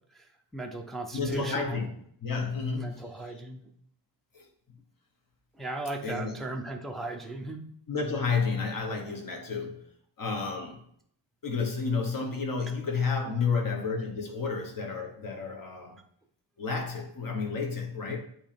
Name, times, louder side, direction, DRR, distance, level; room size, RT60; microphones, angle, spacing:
voice 1, 0.5-1.9 2.7-3.6 5.6-7.6, right 2 dB, ahead, 2 dB, 0.5 m, -37 dB
voice 2, 1.1-1.9 2.2-3.1 4.3-4.4 6.0-6.4 7.9-9.8 10.2-10.8 11.4-16.0 16.6-18.2, left 5 dB, 45° left, 2 dB, 1.4 m, -31 dB
8.0 x 3.0 x 5.2 m, 0.65 s
wide cardioid pair, 170°, 45 cm